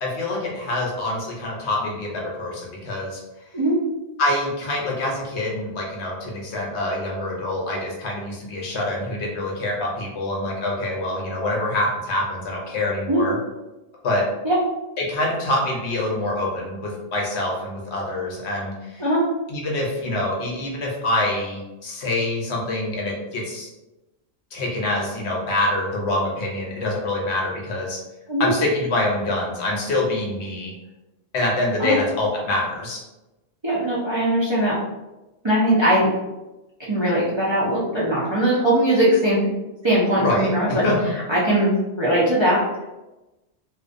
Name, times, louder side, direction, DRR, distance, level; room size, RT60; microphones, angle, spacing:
voice 1, 0.0-3.2 4.2-13.4 14.0-14.2 15.0-19.0 19.5-23.7 24.5-28.0 28.4-30.7 31.3-33.0 40.2-41.0, left 2 dB, 75° left, -2 dB, 0.9 m, -25 dB
voice 2, 33.6-34.8 35.4-36.1 36.8-39.5 39.8-40.8 41.3-42.9, right 1 dB, 40° right, -9 dB, 0.4 m, -20 dB
2.5 x 2.2 x 2.5 m, 1.0 s
omnidirectional pair, 1.2 m